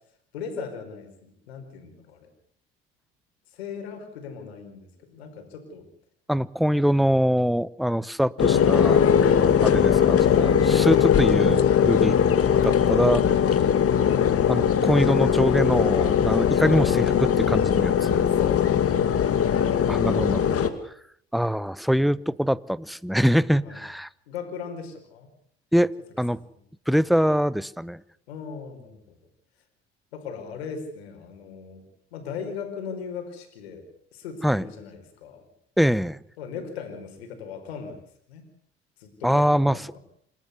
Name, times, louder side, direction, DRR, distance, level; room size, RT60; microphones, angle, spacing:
voice 1, 0.3-2.3 3.5-5.9 14.1-14.3 18.0-19.0 23.6-23.8 24.3-25.3 26.3-26.6 28.3-29.2 30.1-31.8 32.1-33.8 34.1-35.4 36.4-38.0 38.3-38.4 39.0-40.0, left 6 dB, 85° left, 6 dB, 4.9 m, -38 dB
voice 2, 6.3-9.1 9.6-12.2 12.6-13.2 14.5-18.2 19.9-20.7 21.3-24.1 25.7-25.9 26.2-26.4 26.9-28.0 34.4-34.7 35.8-36.2 39.2-39.8, equal, ahead, 20 dB, 0.9 m, -23 dB
sound 1, 8.4-20.7, left 8 dB, 50° left, 2.4 m, -20 dB
28.0 x 13.5 x 8.2 m, 0.67 s
hypercardioid pair, 60°, 31 cm